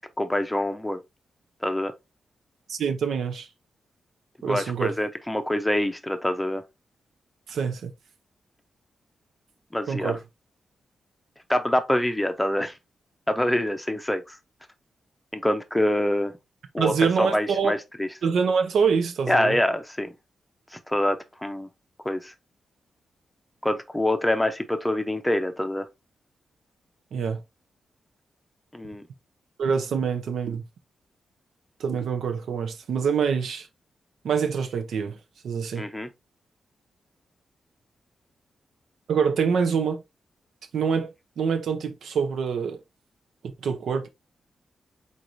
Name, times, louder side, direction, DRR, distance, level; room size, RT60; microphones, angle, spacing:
voice 1, 0.2-1.0 1.6-1.9 4.5-6.6 9.7-10.2 11.5-12.7 13.3-14.4 15.3-16.3 16.7-18.1 19.3-20.1 20.7-21.7 22.0-22.3 23.6-25.9 28.7-29.0 35.8-36.1, left 1 dB, 5° left, 0.6 m, -25 dB
voice 2, 2.7-3.5 4.4-4.9 7.5-7.9 9.9-10.2 16.8-17.7 18.2-19.6 27.1-27.4 29.6-30.6 31.8-33.7 34.2-35.2 35.4-35.8 39.1-40.0 40.7-41.1 41.4-42.8 43.6-44.1, right 6 dB, 80° right, 0.8 m, -25 dB
4.7 x 4.1 x 2.5 m
wide cardioid pair, 140°, 0 cm